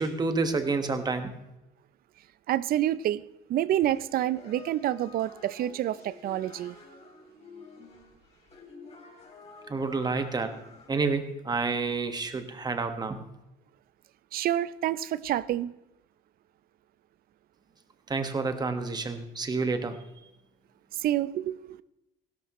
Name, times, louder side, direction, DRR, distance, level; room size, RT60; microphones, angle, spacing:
voice 1, 0.0-1.3 9.7-10.6 10.9-13.2 18.1-20.0, right 4 dB, 25° right, 7 dB, 1.4 m, -29 dB
voice 2, 2.5-3.2 3.5-6.8 14.3-15.7 21.0-21.8, right 12 dB, 60° right, 18 dB, 0.5 m, -28 dB
sound 1, 3.8-10.9, left 3 dB, 40° left, 3.6 m, -50 dB
16.5 x 12.5 x 3.1 m, 0.91 s
cardioid pair, 110°, 17 cm